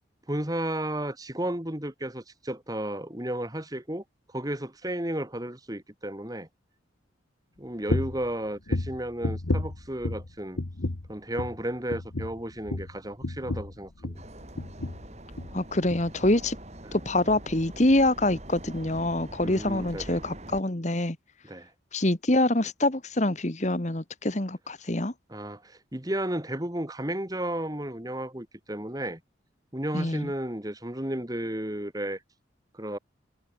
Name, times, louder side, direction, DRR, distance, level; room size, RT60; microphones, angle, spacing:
voice 1, 0.3-6.5 7.6-10.6 11.1-14.2 16.8-16.9 19.4-20.2 21.4-21.7 25.3-29.2 29.7-32.2 32.7-33.0, right 1 dB, 20° right, 1.9 m, -33 dB
sound 1, 7.9-8.3 8.7-10.3 10.6-11.1 11.4-11.6 11.9-14.3 14.6-15.0 15.3-15.6 15.9-16.0, left 2 dB, 80° left, 1.3 m, -31 dB
sound 2, 14.1-20.6, right 1 dB, 35° right, 4.7 m, -44 dB
voice 2, 15.5-16.6 16.9-21.2 21.9-25.1 29.9-30.3, left 1 dB, 35° left, 1.6 m, -25 dB
head